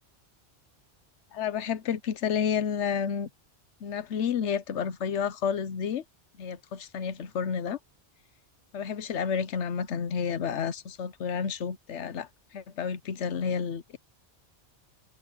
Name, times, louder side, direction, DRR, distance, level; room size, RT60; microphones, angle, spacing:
voice 1, 1.3-3.3 3.8-6.0 6.4-7.8 8.7-14.0, left 7 dB, 80° left, 1.2 m, -30 dB
open air
omnidirectional pair, 1.2 m